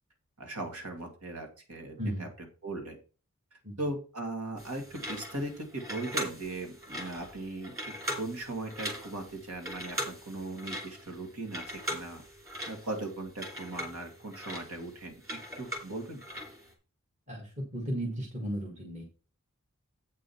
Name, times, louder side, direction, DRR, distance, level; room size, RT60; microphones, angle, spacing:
voice 1, 0.4-2.3 2.6-3.0 3.5-7.7 8.1-12.2 12.7-16.2, right 2 dB, 90° right, 4 dB, 2.3 m, -38 dB
voice 2, 2.0-2.3 3.6-3.8 17.3-19.0, equal, 30° right, 2 dB, 1.7 m, -35 dB
sound 1, 4.6-16.7, equal, 15° right, 2.5 m, -40 dB
8.2 x 5.1 x 5.7 m, 0.35 s
head